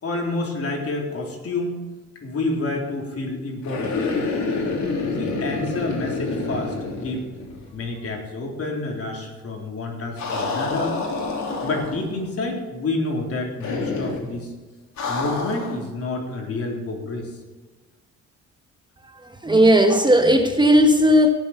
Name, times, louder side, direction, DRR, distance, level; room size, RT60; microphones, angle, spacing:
voice 1, 0.0-1.7 2.2-4.0 5.0-6.7 7.0-7.2 7.7-11.0 11.6-14.5 15.1-17.3, left 2 dB, 50° left, 0 dB, 3.9 m, -28 dB
sound 1, 3.6-7.8 8.0-8.1 10.2-12.2 13.6-14.3 15.0-15.8, left 3 dB, 65° left, 3.6 m, -27 dB
voice 2, 19.4-21.3, equal, 15° right, 5 dB, 1.3 m, -15 dB
17.0 x 7.5 x 6.7 m, 1.3 s
cardioid pair, 90°, 30 cm